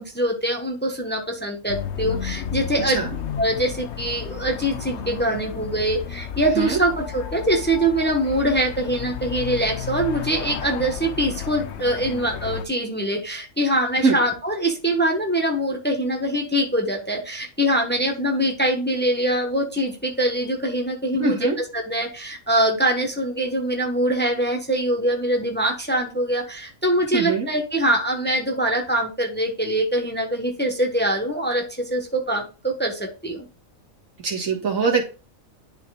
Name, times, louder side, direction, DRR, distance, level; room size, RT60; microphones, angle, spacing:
voice 1, 0.0-3.0 3.4-33.5, right 1 dB, 10° left, 2 dB, 1.1 m, -23 dB
sound 1, 1.7-12.6, left 8 dB, 60° left, 1.0 m, -33 dB
voice 2, 21.2-21.5 27.1-27.5 34.2-35.0, right 4 dB, 75° right, -1 dB, 2.2 m, -22 dB
10.5 x 4.3 x 2.4 m, 0.33 s
omnidirectional pair, 1.4 m